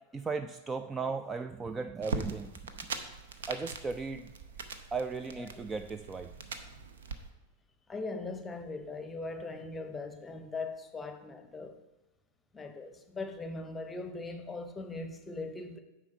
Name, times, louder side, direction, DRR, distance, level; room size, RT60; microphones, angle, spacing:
voice 1, 0.1-2.9 3.5-4.3 4.9-6.3, right 4 dB, 15° right, 0.3 m, -36 dB
sound 1, 2.0-7.2, right 4 dB, 65° right, 0.7 m, -41 dB
voice 2, 7.9-11.8 12.5-15.8, left 3 dB, 15° left, 0.8 m, -40 dB
9.6 x 4.2 x 5.5 m
figure-of-eight pair, 90°, 0 cm